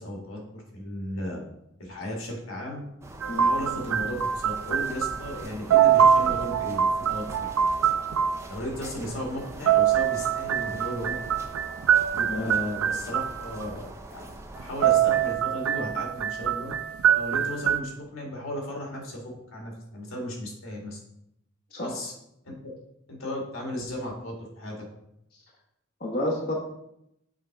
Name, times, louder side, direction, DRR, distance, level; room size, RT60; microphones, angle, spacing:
voice 1, 0.0-1.4 1.8-2.8 3.3-7.2 8.5-11.4 12.1-16.7 17.1-21.0 21.8-22.1 23.1-24.8, left 1 dB, 75° left, 0 dB, 1.7 m, -35 dB
sound 1, 3.0-15.3, right 1 dB, 15° right, 0.5 m, -43 dB
sound 2, 3.2-5.4 5.7-8.4 9.4-13.7 14.6-17.8, right 8 dB, 90° right, 0.4 m, -24 dB
voice 2, 26.0-26.5, left 1 dB, 45° left, -3 dB, 1.2 m, -30 dB
7.4 x 3.7 x 4.5 m, 0.80 s
head